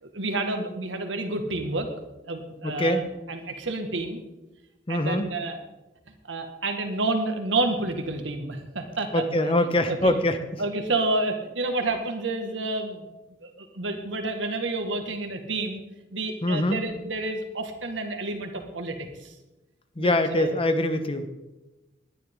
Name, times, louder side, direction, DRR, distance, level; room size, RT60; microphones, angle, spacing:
voice 1, 0.0-1.9 2.3-4.2 4.9-5.6 6.3-10.2 10.6-13.0 13.4-15.8 16.1-19.4 20.0-20.5, right 2 dB, 85° right, 5 dB, 1.8 m, -29 dB
voice 2, 2.6-3.0 4.9-5.3 9.1-10.4 16.4-16.8 20.0-21.3, left 1 dB, 30° left, 9 dB, 1.0 m, -23 dB
20.0 x 10.5 x 3.8 m, 1.0 s
head